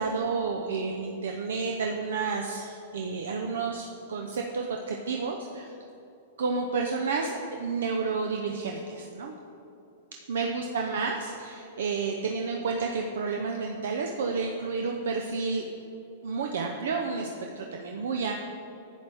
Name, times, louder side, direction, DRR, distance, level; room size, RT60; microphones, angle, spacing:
voice 1, 0.0-5.7 6.4-9.3 10.3-15.7 16.2-17.3 17.6-18.3, right 4 dB, 85° right, 2 dB, 0.7 m, -30 dB
11.0 x 8.3 x 3.5 m, 2.9 s
hypercardioid pair, 150°, 0 cm